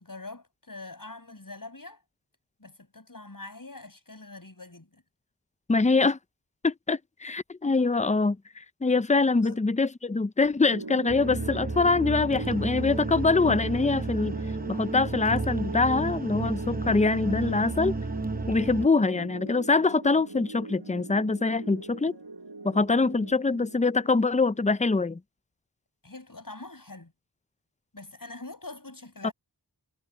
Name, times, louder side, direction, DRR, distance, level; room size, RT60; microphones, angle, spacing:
voice 1, 0.0-2.0 2.6-5.0 9.2-9.6 26.0-27.1 27.9-29.3, left 2 dB, 50° left, 7.2 m, -44 dB
voice 2, 5.7-6.2 6.6-14.3 14.7-17.9 18.5-22.1 22.6-25.2 29.2-29.3, left 3 dB, 15° left, 0.5 m, -24 dB
sound 1, 10.6-25.0, right 3 dB, 65° right, 4.6 m, -41 dB
sound 2, 11.1-18.9, right 3 dB, 20° right, 0.8 m, -32 dB
wide cardioid pair, 50°, 43 cm